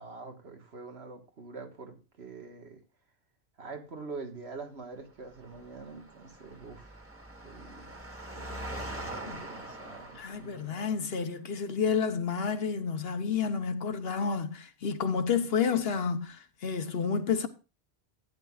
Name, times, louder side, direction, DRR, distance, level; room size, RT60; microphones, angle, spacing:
voice 1, 0.0-2.8 3.6-7.0 7.4-7.9 8.3-11.0, right 4 dB, 85° right, 1.8 m, -45 dB
Engine, 5.2-10.9, right 1 dB, 15° right, 1.3 m, -43 dB
voice 2, 10.2-17.5, left 6 dB, 70° left, 1.2 m, -30 dB
14.5 x 9.8 x 2.4 m
omnidirectional pair, 1.1 m